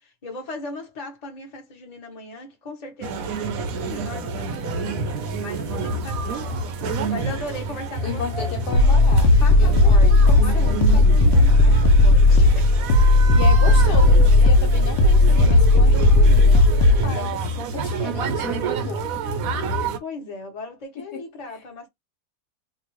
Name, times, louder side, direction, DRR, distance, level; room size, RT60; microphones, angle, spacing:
voice 1, 0.0-5.0 5.4-8.5 9.4-12.7 19.4-21.9, left 2 dB, 30° left, 0.9 m, -38 dB
sound 1, 3.0-20.0, right 3 dB, 70° right, 0.9 m, -28 dB
voice 2, 8.0-9.3 9.6-11.1 13.1-17.4 17.7-19.1 21.0-21.2, left 6 dB, 70° left, 1.2 m, -34 dB
sound 2, 8.7-17.1, left 2 dB, 85° left, 1.3 m, -15 dB
2.9 x 2.5 x 3.0 m
omnidirectional pair, 2.0 m